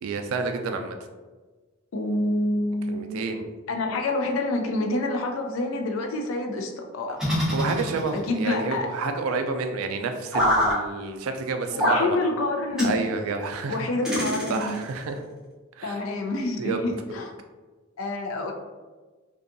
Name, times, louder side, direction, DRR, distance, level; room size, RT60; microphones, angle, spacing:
voice 1, 0.0-1.0 2.9-3.5 7.5-12.2 12.8-15.2 15.8-16.0 16.6-16.9, right 3 dB, 90° right, 6 dB, 0.3 m, -29 dB
voice 2, 1.9-3.2 3.7-7.2 8.1-8.9 11.7-12.9 13.7-14.7 15.8-17.3 18.0-18.5, left 2 dB, 70° left, 3 dB, 0.4 m, -27 dB
sound 1, 7.2-8.4 10.3-10.8 11.8-12.1 12.8-13.0 14.0-14.9, equal, 5° right, 0.6 m, -24 dB
2.6 x 2.3 x 2.5 m, 1.3 s
head